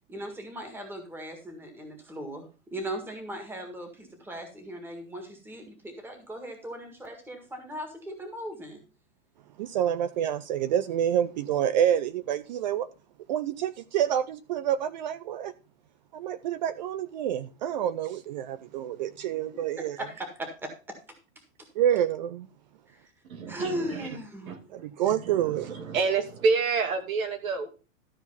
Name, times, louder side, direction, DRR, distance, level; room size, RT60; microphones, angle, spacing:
voice 1, 0.1-8.8 20.0-20.7 22.9-23.1 23.5-24.7, right 1 dB, 5° right, 1.7 m, -38 dB
voice 2, 9.6-12.9 13.3-15.5 16.1-20.0 21.8-22.5 24.7-25.8, right 10 dB, 35° right, 0.4 m, -28 dB
voice 3, 23.3-23.7 24.0-24.1 24.5-24.6 25.1-27.7, right 4 dB, 90° right, 2.7 m, -28 dB
13.0 x 4.5 x 5.5 m
supercardioid pair, 155°, 40 cm